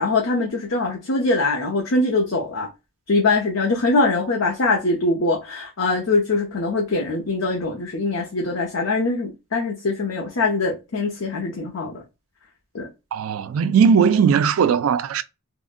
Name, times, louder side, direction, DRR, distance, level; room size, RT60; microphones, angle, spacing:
voice 1, 0.0-2.7 3.1-12.0 12.7-12.9, left 3 dB, 75° left, 0.6 m, -22 dB
voice 2, 13.1-15.2, right 6 dB, 85° right, 0.3 m, -18 dB
3.6 x 2.1 x 2.5 m
head